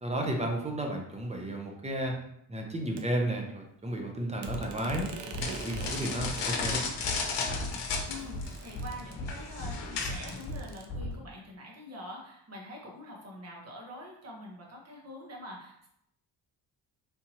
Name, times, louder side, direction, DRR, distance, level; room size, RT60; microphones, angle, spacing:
voice 1, 0.0-2.1 2.5-6.9, right 1 dB, 15° right, 1 dB, 0.6 m, -33 dB
sound 1, 3.0-3.1 4.4-6.5 7.4-7.5 7.7-9.4 10.3-10.9, right 5 dB, 85° right, 0.6 m, -45 dB
sound 2, 4.5-4.6 4.9-5.0 5.3-5.5 5.7-5.9 6.2-6.3 6.6-6.7 7.0-7.2 7.5-8.0 8.3-8.4 8.7-8.9 9.2-9.3 9.6-9.7 10.0-10.2 10.5-10.6 10.9-11.1, left 1 dB, 55° left, 1.3 m, -36 dB
sound 3, 5.4-10.5, left 4 dB, 80° left, 0.7 m, -34 dB
voice 2, 8.1-15.9, left 1 dB, 35° right, -1 dB, 1.1 m, -45 dB
3.5 x 2.8 x 2.9 m, 0.75 s
cardioid pair, 100°, 41 cm